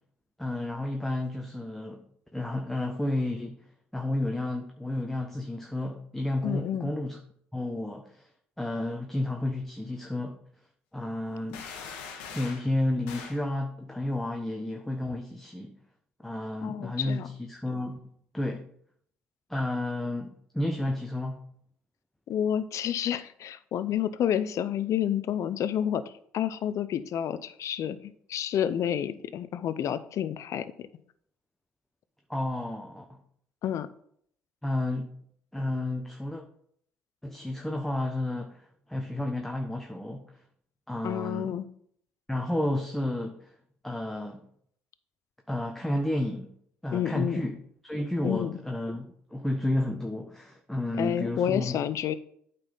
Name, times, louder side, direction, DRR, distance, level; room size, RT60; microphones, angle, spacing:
voice 1, 0.4-2.0 2.3-3.6 3.9-7.2 7.5-8.3 8.6-10.4 10.9-11.6 12.3-15.8 16.2-18.0 18.3-18.7 19.5-21.5 32.3-33.2 34.6-35.1 35.5-36.4 37.2-40.2 40.9-41.6 42.3-43.5 43.8-44.5 45.5-46.6 46.8-47.6 47.8-51.8, left 1 dB, 5° left, 3 dB, 1.0 m, -31 dB
voice 2, 6.4-6.9 16.6-17.3 22.3-28.0 28.3-30.9 33.6-33.9 41.0-41.7 46.9-47.4 48.2-48.5 51.0-52.1, left 10 dB, 60° left, 14 dB, 0.6 m, -29 dB
sound 1, 11.5-12.7 13.1-13.4, left 6 dB, 85° left, 1.2 m, -41 dB
8.9 x 4.2 x 5.5 m, 0.66 s
hypercardioid pair, 55°, 6 cm